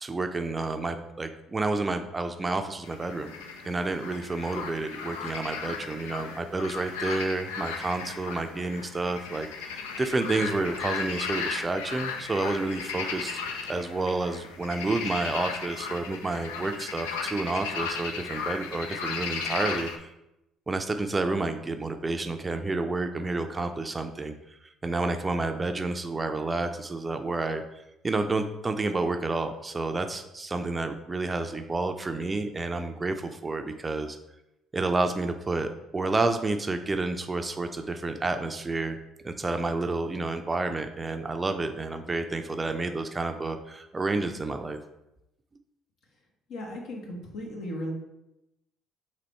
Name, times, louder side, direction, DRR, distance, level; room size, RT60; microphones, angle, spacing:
voice 1, 0.0-3.3 3.6-13.4 13.7-20.1 20.7-24.3 24.8-27.6 28.0-34.2 34.7-39.0 39.2-44.8, right 3 dB, 25° right, 7 dB, 0.4 m, -30 dB
sound 1, 2.8-20.0, left 5 dB, 85° left, 0.4 m, -36 dB
voice 2, 46.5-47.9, left 1 dB, 65° left, -1 dB, 1.1 m, -36 dB
4.0 x 3.0 x 4.4 m, 0.89 s
hypercardioid pair, 60°, 0 cm